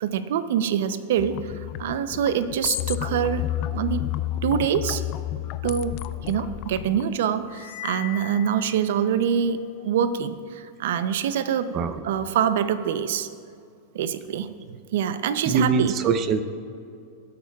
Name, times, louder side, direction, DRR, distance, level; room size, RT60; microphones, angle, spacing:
voice 1, 0.0-4.1 4.4-5.0 5.6-11.7 12.0-13.3 13.9-14.5 14.9-15.9, right 8 dB, 75° right, 12 dB, 0.5 m, -25 dB
sound 1, 1.2-7.0, left 14 dB, 45° left, 0.4 m, -31 dB
sound 2, 7.5-9.3, left 14 dB, 80° left, 1.4 m, -40 dB
voice 2, 15.5-16.4, right 5 dB, 35° right, 10 dB, 0.6 m, -23 dB
17.5 x 8.5 x 2.3 m, 2.4 s
supercardioid pair, 140°, 0 cm